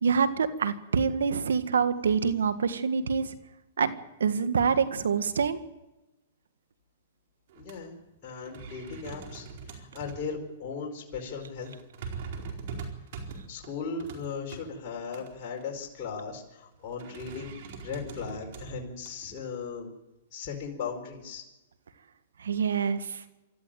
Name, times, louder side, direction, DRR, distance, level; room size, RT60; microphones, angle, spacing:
voice 1, 0.0-3.3 3.8-3.9 4.2-5.6 22.4-23.2, right 6 dB, 85° right, 11 dB, 1.7 m, -26 dB
voice 2, 7.5-11.8 13.5-17.5 17.8-19.9 20.3-21.4, left 5 dB, 40° left, -1 dB, 4.9 m, -37 dB
sound 1, 7.5-7.7 8.1-8.2 8.4-10.3 10.7-10.8 11.6-14.6 15.1-15.6 16.9-19.4, right 5 dB, 55° right, 4.4 m, -42 dB
25.0 x 14.0 x 9.1 m, 1.0 s
hypercardioid pair, 135°, 0 cm